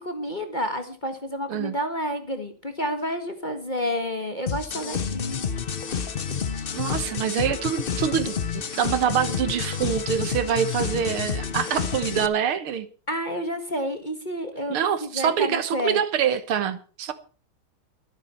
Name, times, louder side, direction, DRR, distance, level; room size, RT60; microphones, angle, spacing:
voice 1, 0.0-5.5 13.1-16.0, equal, 25° left, 1.6 m, -30 dB
sound 1, 4.5-12.3, left 7 dB, 70° left, 0.5 m, -29 dB
voice 2, 6.7-12.9 14.7-17.1, right 8 dB, 80° right, 2.1 m, -25 dB
23.5 x 9.5 x 4.4 m
omnidirectional pair, 2.4 m